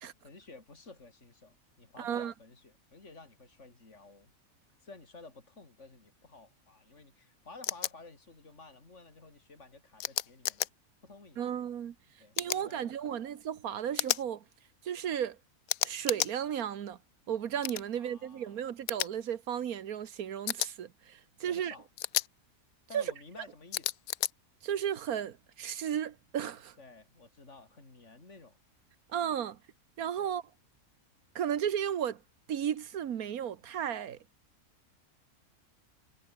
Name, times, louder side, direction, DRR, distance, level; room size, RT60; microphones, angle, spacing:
voice 1, 0.2-4.3 4.8-10.7 11.0-11.5 12.2-13.2 17.9-18.6 21.4-21.9 22.9-24.0 26.8-28.6 30.2-30.3, left 3 dB, 55° left, 4.3 m, -53 dB
voice 2, 2.0-2.3 11.4-11.9 12.4-14.4 14.8-15.4 15.8-17.0 17.3-21.7 22.9-23.0 24.6-26.7 29.1-29.6 30.0-30.4 31.3-32.2 32.5-34.2, right 9 dB, 85° right, 1.5 m, -34 dB
sound 1, 7.6-7.9 10.0-10.7 12.3-12.6 14.0-14.2 15.7-16.3 17.6-17.8 18.9-19.1 20.5-20.7 22.0-22.3 23.7-24.3, left 13 dB, 80° left, 1.1 m, -32 dB
omnidirectional pair, 1.5 m